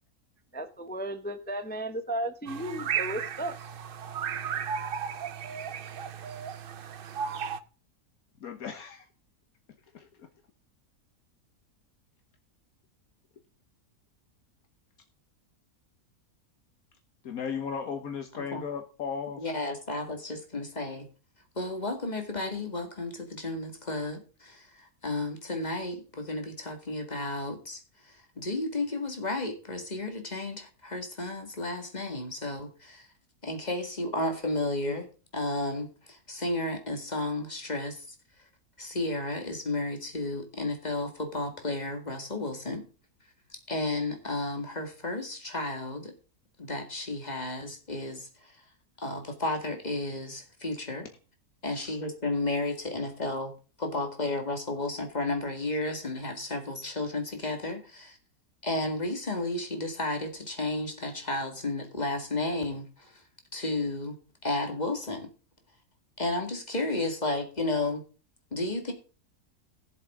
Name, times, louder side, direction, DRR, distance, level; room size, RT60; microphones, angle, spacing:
voice 1, 0.5-3.6, right 1 dB, 10° left, 9 dB, 0.6 m, -34 dB
sound 1, 2.5-7.6, right 7 dB, 55° right, 0.7 m, -34 dB
voice 2, 8.4-9.1 17.2-19.5 51.7-52.0, left 6 dB, 70° left, 6 dB, 1.5 m, -36 dB
voice 3, 19.4-21.1 21.6-24.7 25.0-27.8 28.4-33.1 33.4-35.1 35.3-38.0 38.8-42.8 43.5-46.1 46.6-48.3 49.0-51.1 51.6-53.5 53.8-58.2 58.6-63.1 63.5-64.2 64.4-65.3 66.2-68.0 68.5-68.9, left 2 dB, 30° left, 4 dB, 2.2 m, -32 dB
17.0 x 7.4 x 3.7 m, 0.35 s
omnidirectional pair, 1.6 m